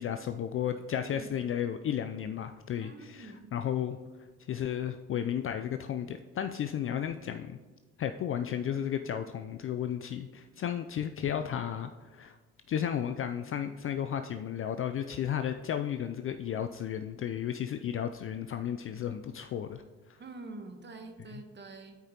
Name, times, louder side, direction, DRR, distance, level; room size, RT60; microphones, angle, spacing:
voice 1, 0.0-4.0 4.5-7.6 8.0-12.4 12.7-19.8 20.1-20.2 21.3-21.4, left 9 dB, 35° left, 8 dB, 0.4 m, -33 dB
voice 2, 1.0-1.3 2.8-3.5 20.2-22.0, right 3 dB, 30° right, 6 dB, 1.2 m, -46 dB
12.5 x 4.9 x 2.9 m, 1.3 s
hypercardioid pair, 70°, 38 cm